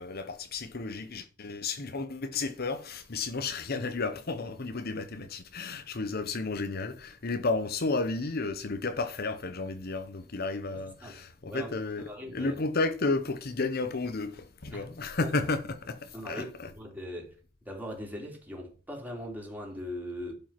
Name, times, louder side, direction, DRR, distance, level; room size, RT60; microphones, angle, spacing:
voice 1, 0.0-16.7, left 3 dB, 50° left, 0.9 m, -32 dB
voice 2, 10.7-12.5 14.7-14.9 15.2-15.3 16.1-17.3 17.6-20.3, equal, 10° right, 3.4 m, -40 dB
11.5 x 5.4 x 5.9 m
head